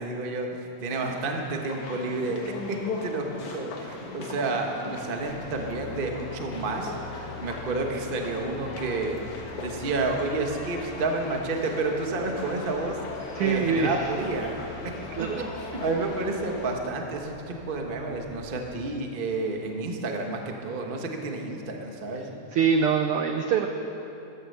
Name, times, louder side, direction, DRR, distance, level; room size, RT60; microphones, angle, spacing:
voice 1, 0.0-6.9 7.4-9.2 9.6-13.0 13.4-14.5 15.7-22.3, right 3 dB, 65° right, 2 dB, 0.5 m, -30 dB
sound 1, 0.9-16.7, left 3 dB, 80° left, 3.0 m, -39 dB
sound 2, 5.2-18.7, left 2 dB, 50° right, 3.4 m, -45 dB
voice 2, 13.4-13.9 15.1-15.5 22.5-23.7, right 6 dB, 85° right, 5 dB, 1.2 m, -24 dB
15.0 x 13.0 x 6.6 m, 2.9 s
omnidirectional pair, 3.3 m